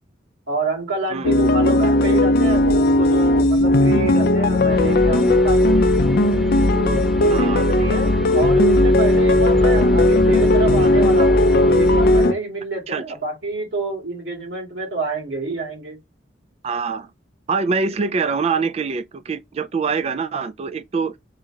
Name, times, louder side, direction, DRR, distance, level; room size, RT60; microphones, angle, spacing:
voice 1, 0.5-5.8 6.7-16.0, right 2 dB, 75° right, 2.2 m, -27 dB
sound 1, 1.2-12.3, left 1 dB, 55° left, 0.4 m, -17 dB
sound 2, 2.5-12.1, left 1 dB, 40° left, 0.9 m, -33 dB
sound 3, 4.7-12.2, left 1 dB, ahead, 0.9 m, -25 dB
voice 2, 7.3-7.7 12.9-13.0 16.6-17.1 17.5-21.2, right 5 dB, 35° right, 0.3 m, -24 dB
3.7 x 2.8 x 4.4 m
head